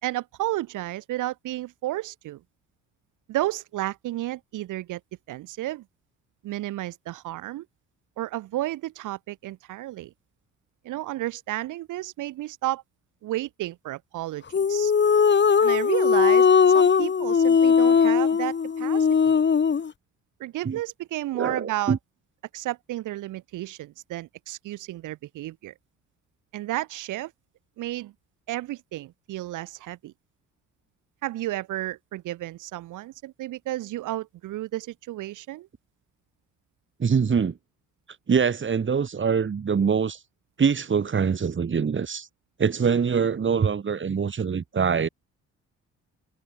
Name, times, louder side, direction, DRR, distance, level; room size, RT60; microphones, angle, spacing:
voice 1, 0.0-2.4 3.3-5.0 5.3-5.8 6.4-7.7 8.2-10.1 10.8-12.8 13.2-14.9 15.6-16.5 16.7-19.3 20.4-22.0 22.5-25.7 26.5-27.3 27.8-28.1 28.5-30.1 31.2-35.7, right 16 dB, 90° right, 4.6 m, -32 dB
sound 1, 14.5-19.9, left 6 dB, 35° left, 2.2 m, -19 dB
voice 2, 21.3-22.0 37.0-37.6 38.3-40.2 40.6-42.3 42.6-45.1, right 6 dB, 40° right, 4.0 m, -24 dB
cardioid pair, 90°, 30 cm